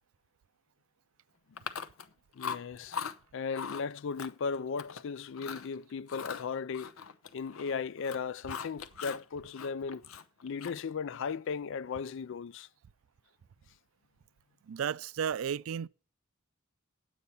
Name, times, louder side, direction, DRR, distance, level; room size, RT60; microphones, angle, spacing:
Chewing mastication, 1.6-2.1 2.4-3.1 3.5-3.8 4.2-5.0 5.3-5.7 6.1-7.7 8.0-9.2 9.5-10.9, left 6 dB, 85° left, 0.8 m, -40 dB
voice 1, 2.3-3.0 3.3-6.9 7.3-10.1 10.4-12.7, left 5 dB, 65° left, 0.4 m, -36 dB
voice 2, 14.7-15.9, right 8 dB, 80° right, 0.4 m, -33 dB
9.5 x 8.4 x 5.5 m
head